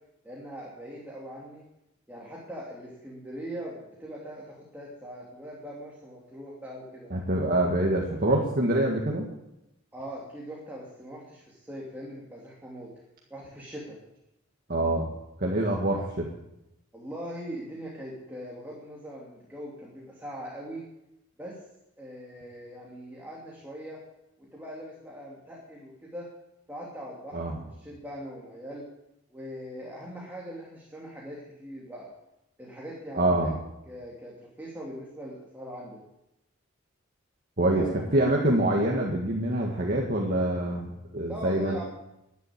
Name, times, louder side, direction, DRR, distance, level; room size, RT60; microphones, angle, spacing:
voice 1, 0.2-1.6 2.1-7.1 9.9-12.9 13.3-14.0 15.8-16.0 16.9-20.9 21.4-21.6 22.0-24.0 24.4-26.3 26.7-28.9 29.3-32.1 32.6-33.5 33.9-36.0 37.6-38.0 41.3-41.8, equal, 10° right, -4 dB, 2.8 m, -41 dB
voice 2, 7.1-9.3 14.7-15.1 15.4-16.0 27.3-27.6 33.1-33.6 37.6-37.8 38.1-41.8, right 1 dB, 45° right, -1 dB, 1.9 m, -25 dB
12.5 x 10.5 x 8.9 m, 0.88 s
head